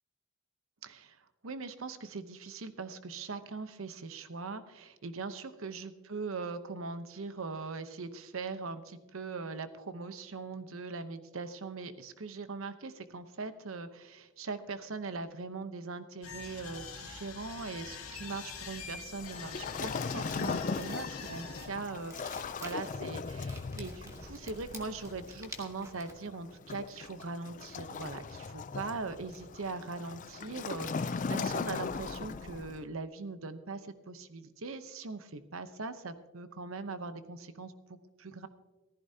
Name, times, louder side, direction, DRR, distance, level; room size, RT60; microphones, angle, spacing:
voice 1, 0.8-38.5, right 4 dB, 70° right, 11 dB, 0.8 m, -41 dB
sound 1, 16.2-21.7, left 6 dB, 80° left, 2.2 m, -45 dB
Waves surf, 19.2-32.8, left 4 dB, 35° left, 0.4 m, -39 dB
sound 2, 19.9-26.1, right 1 dB, 15° right, 1.3 m, -50 dB
15.0 x 14.5 x 2.8 m, 1.1 s
head